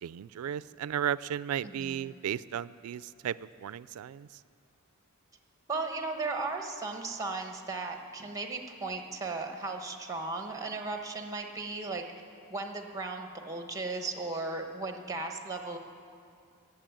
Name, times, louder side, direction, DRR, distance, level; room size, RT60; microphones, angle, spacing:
voice 1, 0.0-4.3, right 9 dB, 85° right, 18 dB, 0.3 m, -35 dB
voice 2, 1.6-2.0 5.7-12.0 12.5-15.8, right 3 dB, 15° right, 4 dB, 1.1 m, -36 dB
16.0 x 7.4 x 9.0 m, 2.4 s
head